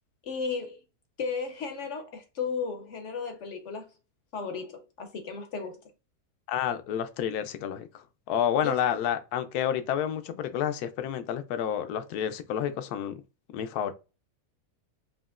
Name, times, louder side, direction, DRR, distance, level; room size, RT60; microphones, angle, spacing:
voice 1, 0.2-0.8 1.2-3.9 4.3-5.8 8.6-8.8, left 5 dB, 60° left, 0.9 m, -34 dB
voice 2, 6.5-13.2 13.5-13.9, left 9 dB, 80° left, 1.1 m, -30 dB
4.9 x 2.8 x 2.4 m
omnidirectional pair, 1.6 m